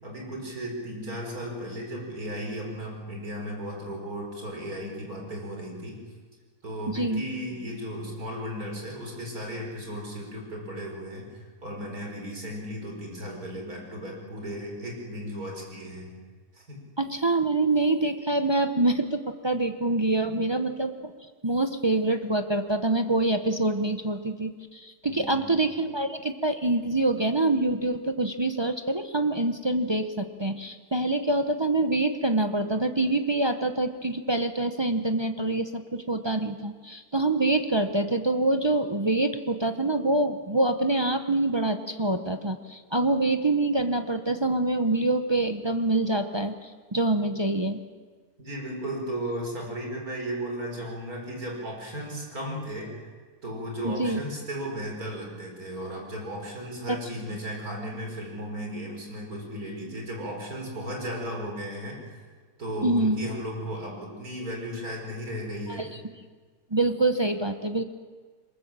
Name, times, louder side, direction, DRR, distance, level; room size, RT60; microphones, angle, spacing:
voice 1, 0.0-6.0 6.6-16.1 16.5-16.8 20.3-20.4 25.0-25.6 48.4-53.1 53.4-62.1 62.6-65.8, equal, 60° right, 0 dB, 5.0 m, -35 dB
voice 2, 6.9-7.2 17.0-21.1 21.4-47.8 53.8-54.2 56.9-57.0 62.8-63.3 65.8-65.9 66.7-67.8, right 2 dB, 30° right, 7 dB, 0.5 m, -25 dB
22.5 x 20.5 x 7.5 m, 1.5 s
omnidirectional pair, 1.7 m